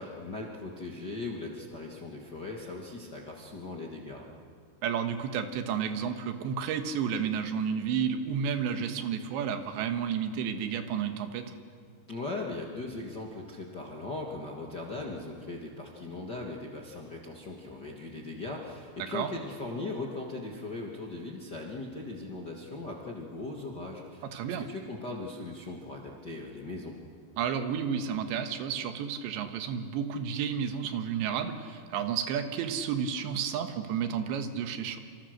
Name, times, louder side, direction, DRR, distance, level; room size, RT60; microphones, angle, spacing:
voice 1, 0.0-4.3 12.1-24.3 24.7-26.9, left 2 dB, 45° left, -1 dB, 1.3 m, -39 dB
voice 2, 4.8-11.5 19.1-19.3 24.3-24.7 27.4-35.0, right 7 dB, 90° right, 7 dB, 3.7 m, -31 dB
27.0 x 26.5 x 6.6 m, 2.1 s
omnidirectional pair, 5.0 m